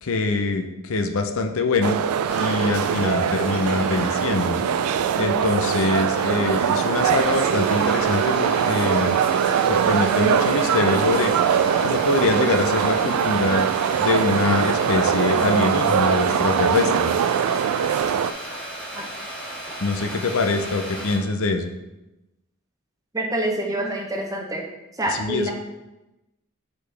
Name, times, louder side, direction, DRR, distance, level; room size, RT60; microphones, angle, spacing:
voice 1, 0.0-2.0 2.4-4.6 5.2-9.1 9.7-11.3 11.8-13.7 14.0-17.1 19.8-21.7 25.1-25.5, left 3 dB, 65° left, 6 dB, 0.6 m, -24 dB
sound 1, 1.8-18.3, right 8 dB, 80° right, 0.3 m, -22 dB
sound 2, 2.3-21.2, equal, 5° left, 2.4 m, -35 dB
voice 2, 23.1-24.7 25.0-25.5, right 1 dB, 15° right, 1 dB, 0.7 m, -26 dB
8.0 x 4.2 x 3.3 m, 0.98 s
head